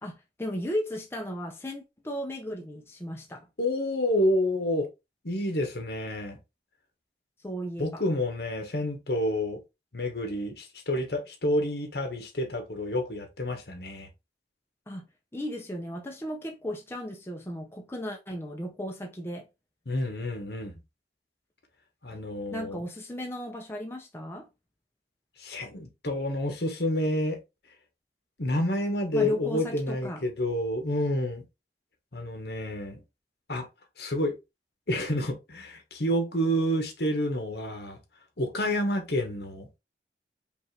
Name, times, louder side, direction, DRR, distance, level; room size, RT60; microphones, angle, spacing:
voice 1, 0.0-3.5 7.4-8.0 14.9-15.1 15.3-19.5 22.5-24.5 29.1-30.2, equal, 15° left, 0.6 m, -35 dB
voice 2, 3.6-4.9 5.2-6.4 7.8-9.6 9.9-14.1 19.9-20.8 22.0-22.8 25.4-27.4 28.4-31.4 32.1-33.0 33.5-33.7 34.0-34.4 34.9-38.0 38.4-39.7, left 1 dB, 70° left, 1.3 m, -29 dB
5.3 x 2.5 x 3.3 m
head